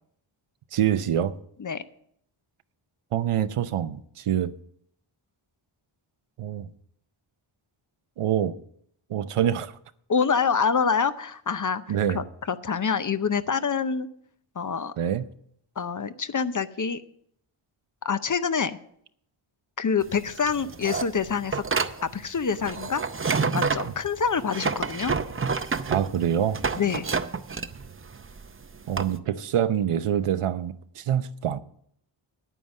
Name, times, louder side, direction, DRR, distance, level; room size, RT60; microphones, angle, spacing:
voice 1, 0.7-1.3 3.1-4.5 6.4-6.7 8.2-8.5 9.1-9.7 11.9-12.2 15.0-15.2 25.9-26.6 28.9-31.6, right 10 dB, 85° right, 0.7 m, -25 dB
voice 2, 10.1-14.1 14.6-14.9 15.8-17.0 18.0-18.8 19.8-21.6 22.0-23.0 23.5-25.2 26.8-27.1, left 6 dB, 40° left, 0.6 m, -26 dB
sound 1, 20.0-29.2, right 5 dB, 25° right, 0.6 m, -29 dB
9.5 x 9.2 x 6.4 m
wide cardioid pair, 105°, 50 cm